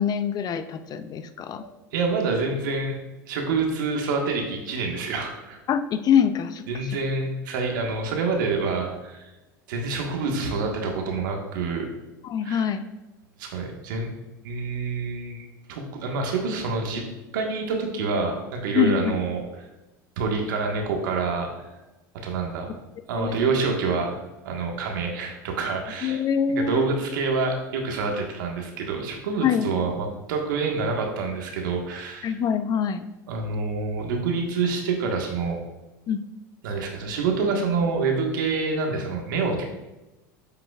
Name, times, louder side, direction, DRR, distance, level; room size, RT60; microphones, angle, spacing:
voice 1, 0.0-1.6 5.7-7.0 12.2-12.8 18.7-19.2 23.1-23.4 26.0-26.8 29.4-29.7 32.2-33.1 36.1-36.2, left 8 dB, 40° left, 10 dB, 0.5 m, -24 dB
voice 2, 1.6-3.0 3.3-5.6 6.7-9.3 9.7-11.8 12.4-12.7 13.4-14.1 14.4-17.0 17.3-19.7 20.2-21.7 22.2-22.8 23.1-24.2 24.4-26.2 26.5-32.4 33.3-35.6 36.6-39.6, right 4 dB, 75° right, 1 dB, 1.5 m, -27 dB
8.4 x 5.7 x 2.4 m, 1.0 s
hypercardioid pair, 90°, 11 cm